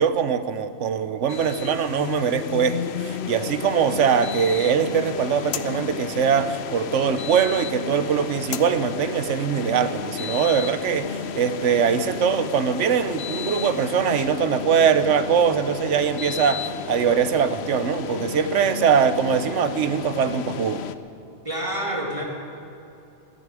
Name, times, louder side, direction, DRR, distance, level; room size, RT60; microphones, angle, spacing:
voice 1, 0.0-20.8, right 7 dB, 80° right, 12 dB, 1.1 m, -22 dB
sound 1, 1.3-21.0, left 7 dB, 65° left, 0.9 m, -32 dB
voice 2, 21.4-22.2, right 1 dB, 25° right, -2 dB, 2.5 m, -27 dB
13.5 x 11.0 x 9.8 m, 2.9 s
omnidirectional pair, 1.2 m